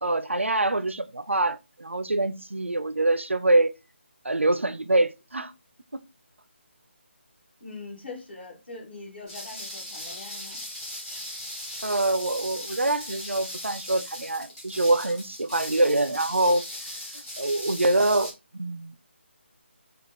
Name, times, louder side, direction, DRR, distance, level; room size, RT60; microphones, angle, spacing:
voice 1, 0.0-3.7 4.2-5.5 5.9-6.0 11.8-16.6 17.1-19.0, right 2 dB, 80° right, 0.5 m, -25 dB
voice 2, 7.6-10.6, left 3 dB, 50° left, 2.3 m, -42 dB
sound 1, 9.3-18.3, left 1 dB, 10° left, 1.1 m, -38 dB
5.0 x 2.3 x 4.0 m
figure-of-eight pair, 150°, 7 cm